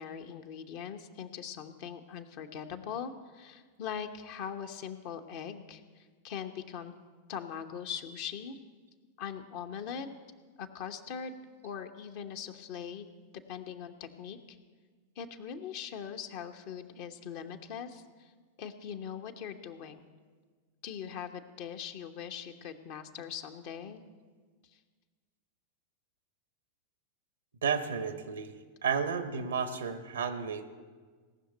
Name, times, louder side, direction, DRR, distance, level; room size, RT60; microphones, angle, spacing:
voice 1, 0.0-6.9 7.3-8.6 9.2-10.1 10.6-13.1 13.5-14.6 15.2-18.3 18.6-20.0 20.8-24.0 24.7-24.8, left 8 dB, 50° left, 6 dB, 0.9 m, -41 dB
voice 2, 27.6-28.6 28.8-30.6, right 6 dB, 70° right, 10 dB, 0.9 m, -32 dB
17.5 x 6.5 x 9.1 m, 1.5 s
figure-of-eight pair, 90°, 0 cm